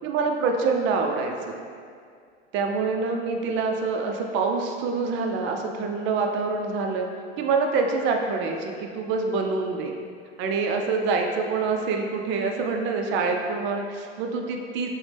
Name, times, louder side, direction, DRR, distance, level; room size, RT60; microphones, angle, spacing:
voice 1, 0.0-1.5 2.5-7.1 7.4-9.9 10.4-14.9, right 4 dB, 35° right, 2 dB, 0.4 m, -26 dB
4.8 x 2.1 x 3.3 m, 2.2 s
hypercardioid pair, 100°, 34 cm